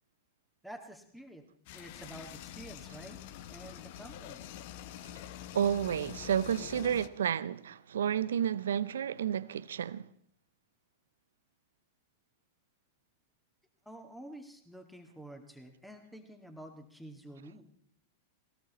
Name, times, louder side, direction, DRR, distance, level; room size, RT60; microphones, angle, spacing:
voice 1, 0.6-1.4 1.7-3.2 3.5-4.4 13.9-17.6, right 1 dB, ahead, 2.1 m, -49 dB
sound 1, 1.7-7.1, left 12 dB, 60° left, 0.9 m, -46 dB
voice 2, 5.5-10.1, right 9 dB, 80° right, 0.6 m, -31 dB
19.0 x 18.5 x 4.2 m
hypercardioid pair, 100°, 0 cm